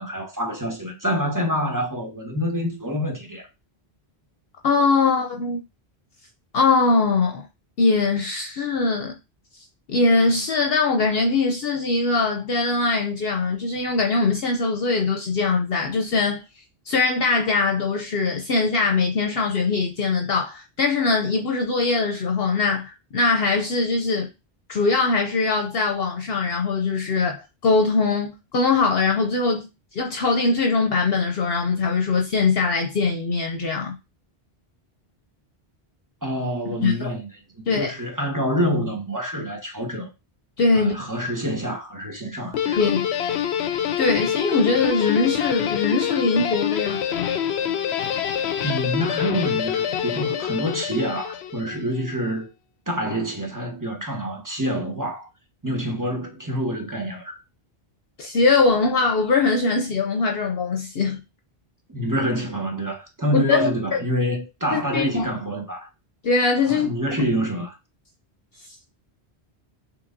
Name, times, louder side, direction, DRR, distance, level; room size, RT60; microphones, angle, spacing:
voice 1, 0.0-3.5 36.2-37.3 37.5-40.1 40.7-42.8 48.6-52.5 52.9-55.3 55.6-57.4 61.9-65.9 66.7-67.8, equal, 20° right, 1.1 m, -27 dB
voice 2, 4.6-5.6 6.5-7.5 7.8-9.2 9.9-16.4 16.9-24.3 24.7-34.0 36.7-37.1 37.7-37.9 40.6-41.0 42.8-43.1 44.0-47.0 58.2-61.2 63.3-64.0 64.7-65.2 66.2-66.9, left 4 dB, 65° left, 0.9 m, -22 dB
Guitar, 42.5-51.9, left 9 dB, 90° left, 0.9 m, -26 dB
5.9 x 3.3 x 2.6 m
omnidirectional pair, 1.1 m